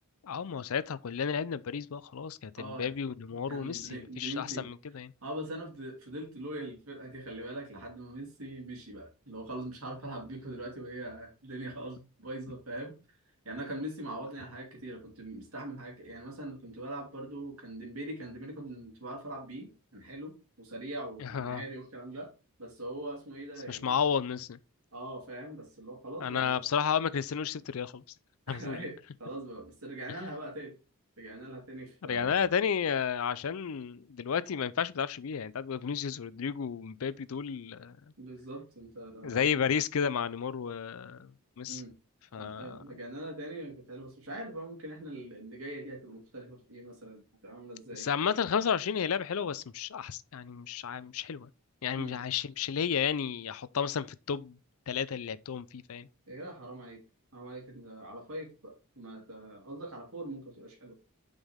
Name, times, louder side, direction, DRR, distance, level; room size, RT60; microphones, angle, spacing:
voice 1, 0.2-5.1 21.2-21.6 23.7-24.6 26.2-28.0 28.5-28.8 30.1-30.3 32.0-38.0 39.2-41.3 41.6-41.8 42.3-43.0 47.9-51.5 51.8-54.6 54.9-56.1, left 7 dB, 65° left, 0.5 m, -32 dB
voice 2, 2.6-2.9 3.3-4.6 5.2-12.9 13.4-22.3 22.6-24.0 24.9-26.6 28.5-30.7 31.2-32.5 38.2-39.6 41.7-41.9 42.4-48.1 52.0-52.2 56.3-57.0 57.3-61.0, right 1 dB, 70° right, 2.8 m, -42 dB
7.2 x 5.4 x 3.6 m
head